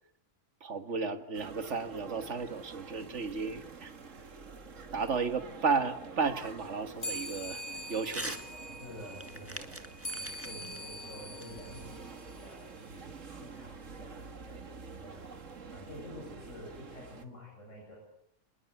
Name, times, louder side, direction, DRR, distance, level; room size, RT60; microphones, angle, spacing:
voice 1, 0.6-3.9 4.9-7.6 7.9-8.4 10.4-10.6, right 5 dB, 70° right, 9 dB, 2.1 m, -33 dB
sound 1, 1.3-17.3, right 4 dB, 85° right, 2.2 m, -48 dB
sound 2, 7.0-12.8, equal, 40° left, 5.1 m, -43 dB
Crumpling crinkling / Tearing, 8.1-8.5 8.8-12.1, right 1 dB, 10° right, 1.8 m, -43 dB
voice 2, 8.8-9.8 10.1-15.4 15.7-18.0, left 1 dB, 80° left, -2 dB, 7.8 m, -49 dB
27.5 x 21.0 x 8.0 m, 0.72 s
omnidirectional pair, 1.3 m